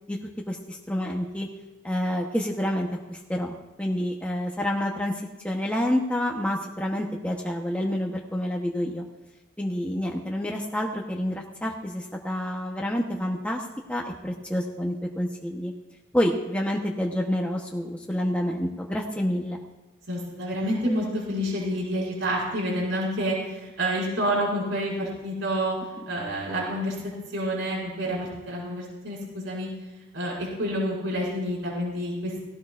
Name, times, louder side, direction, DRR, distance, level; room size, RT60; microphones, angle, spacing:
voice 1, 0.5-1.5 1.8-5.1 5.4-9.0 9.6-15.7 16.1-19.6, left 1 dB, 5° left, -1 dB, 0.9 m, -28 dB
voice 2, 20.1-25.8 26.1-26.9 27.3-29.7 30.1-32.4, equal, 75° right, -5 dB, 5.7 m, -28 dB
18.0 x 17.0 x 2.5 m, 1.1 s
head